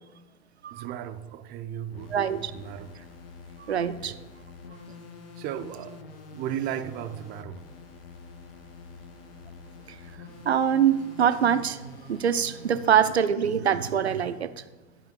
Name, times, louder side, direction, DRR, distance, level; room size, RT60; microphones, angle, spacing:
voice 1, 0.7-2.9 4.0-4.2 5.4-6.0 6.3-7.6, right 10 dB, 30° right, 0.5 m, -35 dB
sound 1, 1.9-13.0, left 4 dB, 65° left, 1.0 m, -46 dB
voice 2, 2.1-2.5 3.7-4.1 10.5-14.5, right 8 dB, 85° right, 0.5 m, -24 dB
12.0 x 5.0 x 3.7 m
figure-of-eight pair, 80°, 32 cm